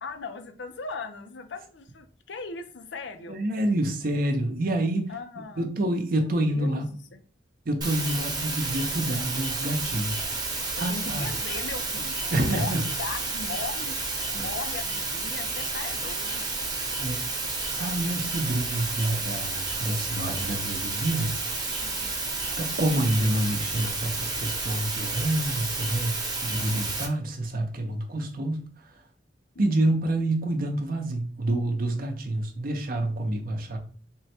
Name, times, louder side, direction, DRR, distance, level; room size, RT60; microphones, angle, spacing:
voice 1, 0.0-3.4 5.1-5.7 6.2-7.2 10.8-16.4 21.8-22.1 29.5-29.7, left 4 dB, 75° left, 0.6 m, -39 dB
voice 2, 3.3-5.1 5.6-6.9 7.7-11.3 12.3-12.8 17.0-17.2 17.8-21.4 21.7-21.8 22.6-28.9 29.6-33.8, right 1 dB, 50° right, 0.6 m, -28 dB
sound 1, 7.8-27.1, right 3 dB, 25° right, 0.9 m, -31 dB
3.6 x 2.2 x 4.2 m
head